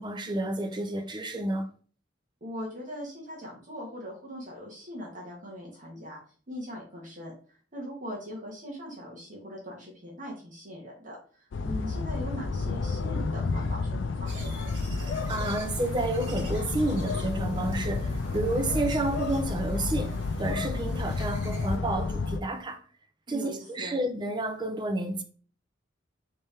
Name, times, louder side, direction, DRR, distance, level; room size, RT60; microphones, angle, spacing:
voice 1, 0.0-1.7 15.0-20.1 20.4-22.8 23.3-25.2, right 2 dB, 25° right, 0.6 m, -30 dB
voice 2, 2.4-6.2 6.5-14.6 23.3-23.9, equal, 45° right, 1.3 m, -40 dB
sound 1, 11.5-22.4, left 4 dB, 80° left, 0.4 m, -31 dB
sound 2, 14.2-21.8, right 2 dB, 75° right, 1.9 m, -47 dB
3.5 x 3.3 x 4.2 m
head